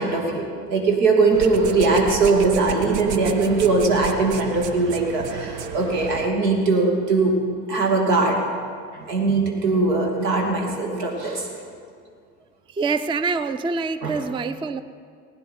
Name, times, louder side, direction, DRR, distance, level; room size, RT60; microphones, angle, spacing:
voice 1, 0.0-7.4 7.7-8.4 8.9-11.5 14.0-14.2, right 3 dB, 80° right, 2 dB, 2.3 m, -20 dB
sound 1, 1.3-6.3, right 7 dB, 65° right, 1.0 m, -33 dB
voice 2, 12.7-14.8, right 4 dB, 10° right, 13 dB, 0.4 m, -25 dB
20.0 x 9.8 x 4.5 m, 2.2 s
hypercardioid pair, 60°, 47 cm